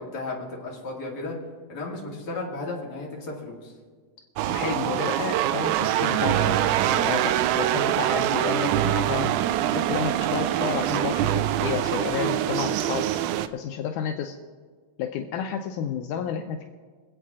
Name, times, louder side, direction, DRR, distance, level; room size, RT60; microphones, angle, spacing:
voice 1, 0.0-1.4 1.7-3.7, left 2 dB, 30° left, -3 dB, 2.6 m, -34 dB
sound 1, 4.4-13.5, right 12 dB, 80° right, 1.9 m, -24 dB
voice 2, 4.5-9.3 9.7-13.1 13.5-14.4 15.0-16.7, left 8 dB, 80° left, 4 dB, 2.1 m, -31 dB
25.0 x 8.4 x 3.7 m, 1.5 s
omnidirectional pair, 3.8 m